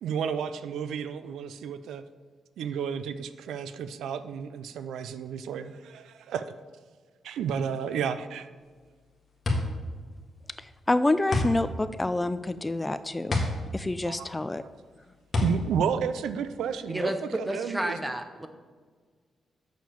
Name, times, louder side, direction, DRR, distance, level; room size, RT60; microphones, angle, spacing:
voice 1, 0.0-2.0 2.6-6.5 7.2-8.5 14.0-14.3 14.6-14.7 15.4-18.0, right 7 dB, 90° right, 12 dB, 0.4 m, -32 dB
sound 1, 8.6-17.0, left 2 dB, 40° left, 1.7 m, -31 dB
voice 2, 10.9-13.4 13.7-14.6, left 2 dB, 15° left, 13 dB, 0.3 m, -27 dB
voice 3, 16.9-18.5, right 1 dB, 10° right, 8 dB, 0.9 m, -31 dB
6.8 x 6.3 x 6.8 m, 1.5 s
cardioid pair, 85°, 0 cm